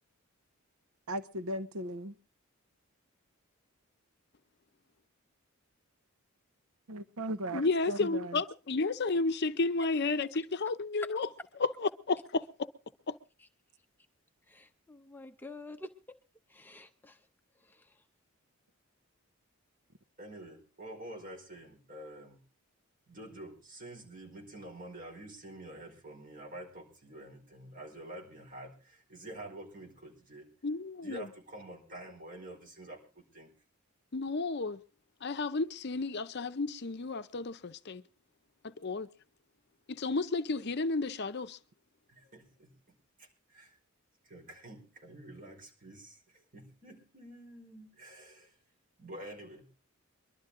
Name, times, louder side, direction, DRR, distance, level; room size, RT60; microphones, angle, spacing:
voice 1, 1.1-2.1 6.9-8.4, right 1 dB, 85° right, 0.8 m, -37 dB
voice 2, 7.5-11.3 11.6-12.5 13.1-13.2 30.6-31.3 34.1-34.8 35.2-38.0 38.6-39.1 39.9-41.6, left 3 dB, 50° left, 0.7 m, -32 dB
voice 3, 14.5-16.2 16.5-17.3 17.6-18.0, left 2 dB, 10° left, 0.7 m, -48 dB
voice 4, 20.2-22.4 23.1-30.5 31.0-33.5 42.1-43.8 44.2-48.6 49.0-49.7, right 1 dB, 40° right, 5.0 m, -48 dB
23.0 x 12.0 x 3.7 m
head